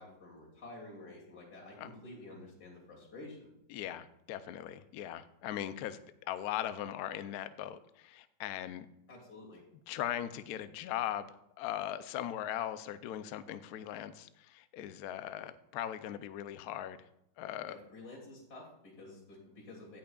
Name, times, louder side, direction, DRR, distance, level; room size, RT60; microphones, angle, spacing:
voice 1, 0.0-3.5 9.1-9.6 17.7-20.0, left 2 dB, 50° left, -3 dB, 3.1 m, -50 dB
voice 2, 3.7-8.9 9.9-17.0 17.4-17.8, left 11 dB, 90° left, 12 dB, 0.8 m, -39 dB
17.0 x 6.1 x 2.4 m, 0.81 s
omnidirectional pair, 2.2 m